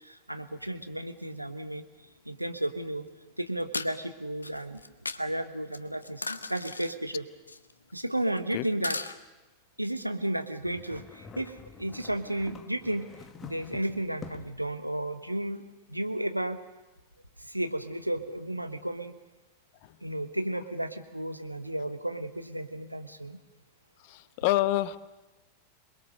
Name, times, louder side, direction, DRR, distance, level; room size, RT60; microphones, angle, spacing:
voice 1, 0.0-1.8 2.2-3.1 3.4-4.8 5.1-6.2 6.5-7.2 7.9-9.0 9.8-13.1 13.4-15.6 15.9-16.6 17.4-19.1 20.0-23.4, right 1 dB, 90° right, 8 dB, 1.3 m, -33 dB
sound 1, 2.6-2.7 3.6-3.9 4.4-5.2 5.7-6.9 7.5-7.7 8.1-8.4 8.6-9.2, left 3 dB, 80° left, 0.9 m, -36 dB
sound 2, 10.6-14.7, left 6 dB, 25° left, 1.4 m, -47 dB
voice 2, 24.1-25.0, left 16 dB, 45° left, 15 dB, 0.9 m, -27 dB
27.5 x 21.0 x 6.6 m, 1.1 s
figure-of-eight pair, 90°, 0 cm